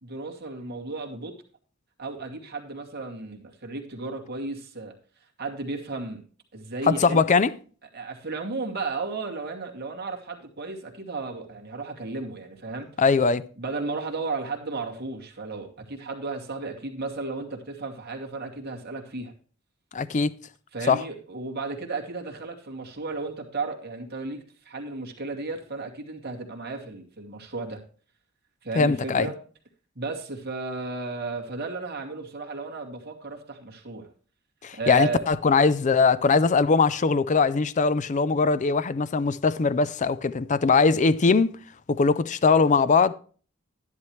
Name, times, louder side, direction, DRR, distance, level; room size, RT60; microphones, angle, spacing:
voice 1, 0.0-1.4 2.0-4.9 5.4-6.2 6.5-7.2 7.9-12.9 13.6-19.3 20.7-27.8 28.6-29.4 30.0-34.1 34.7-35.2, right 3 dB, 50° right, 2.4 m, -34 dB
voice 2, 6.9-7.5 13.0-13.5 19.9-20.3 20.9-21.0 28.8-29.3 34.6-41.5 41.9-43.1, left 4 dB, 35° left, 0.5 m, -21 dB
12.0 x 10.5 x 3.2 m
head